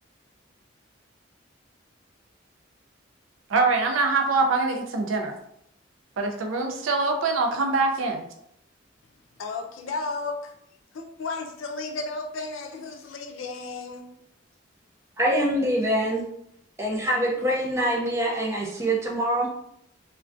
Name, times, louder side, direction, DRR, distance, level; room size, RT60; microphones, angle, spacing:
voice 1, 3.5-5.3 6.2-8.3, right 3 dB, 85° right, 5 dB, 0.4 m, -24 dB
voice 2, 9.4-10.5 10.9-14.1, left 3 dB, 85° left, 5 dB, 0.4 m, -33 dB
voice 3, 15.2-16.2 16.8-19.5, right 1 dB, 15° right, -2 dB, 0.4 m, -24 dB
2.2 x 2.2 x 2.5 m, 0.74 s
head